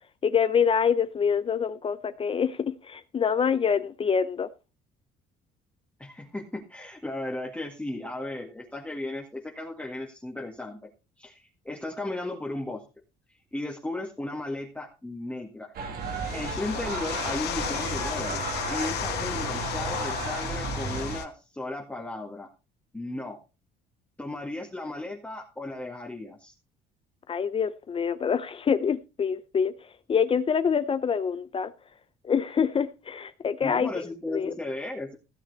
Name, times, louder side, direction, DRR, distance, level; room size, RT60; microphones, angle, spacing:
voice 1, 0.2-4.5 27.3-29.7 30.1-31.7 32.2-34.5, left 6 dB, 35° left, 0.7 m, -26 dB
voice 2, 6.0-10.9 11.2-12.8 13.5-15.7 16.3-22.5 22.9-23.4 24.2-26.5 33.6-35.2, left 2 dB, 10° left, 1.9 m, -35 dB
sound 1, 15.7-21.2, right 4 dB, 60° right, 2.8 m, -34 dB
sound 2, 16.0-21.2, left 10 dB, 80° left, 2.2 m, -33 dB
16.5 x 7.4 x 4.2 m
cardioid pair, 110°, 17 cm